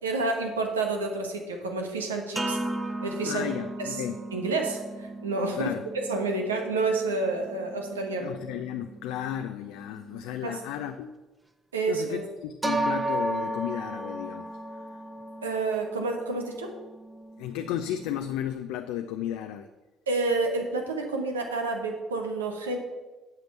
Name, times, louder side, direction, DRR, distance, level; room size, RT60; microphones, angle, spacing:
voice 1, 0.0-2.6 3.0-3.5 3.8-4.0 4.3-5.7 6.1-8.3 10.4-10.6 11.7-12.2 15.4-16.7 20.1-22.8, right 3 dB, 90° right, 3 dB, 1.2 m, -29 dB
sound 1, 2.4-11.0 12.6-18.5, right 2 dB, 20° right, 1.2 m, -36 dB
voice 2, 3.2-4.2 5.6-5.8 8.2-11.2 11.9-14.8 17.4-19.7, left 11 dB, 70° left, 7 dB, 0.5 m, -34 dB
8.2 x 5.9 x 6.7 m, 1.2 s
hypercardioid pair, 50°, 0 cm